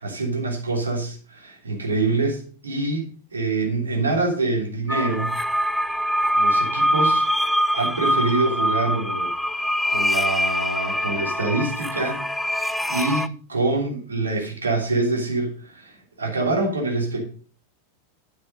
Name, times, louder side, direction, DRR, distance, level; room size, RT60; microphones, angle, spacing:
voice 1, 0.0-3.1 3.3-5.4 6.3-7.3 7.7-17.3, right 3 dB, 75° right, 2 dB, 3.1 m, -26 dB
sound 1, 4.9-13.3, equal, ahead, 0.4 m, -23 dB
10.0 x 7.3 x 5.4 m, 0.40 s
figure-of-eight pair, 90°, 0 cm